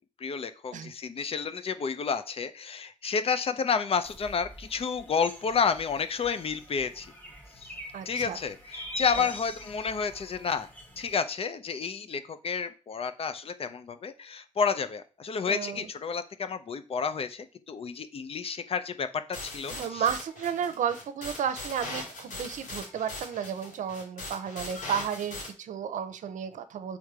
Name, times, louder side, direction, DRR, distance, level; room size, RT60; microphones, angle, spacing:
voice 1, 0.2-7.1 7.6-7.7 8.1-10.7 11.0-20.0, left 6 dB, 45° left, 12 dB, 0.7 m, -30 dB
sound 1, 4.0-11.2, left 2 dB, 10° left, 1.8 m, -43 dB
voice 2, 7.9-8.4 9.2-9.3 15.5-15.9 19.7-27.0, right 8 dB, 75° right, 11 dB, 0.7 m, -33 dB
sound 2, 19.3-25.5, left 2 dB, 85° left, 2.6 m, -40 dB
6.4 x 3.5 x 4.8 m, 0.36 s
cardioid pair, 100°, 13 cm